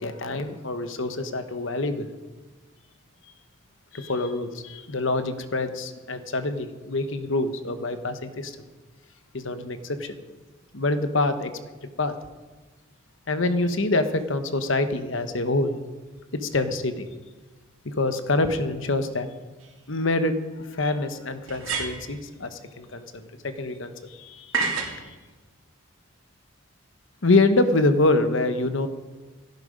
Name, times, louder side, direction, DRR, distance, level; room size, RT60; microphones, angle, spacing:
voice 1, 0.0-2.1 3.9-8.6 9.3-10.2 10.7-11.5 12.0-12.1 13.3-15.7 16.3-17.1 17.8-19.3 19.9-24.9 27.2-28.9, left 2 dB, 65° left, 9 dB, 1.1 m, -25 dB
sound 1, 19.6-19.7 21.5-22.2 24.5-25.0, right 4 dB, 80° right, 2.5 m, -28 dB
16.5 x 10.5 x 5.1 m, 1.3 s
head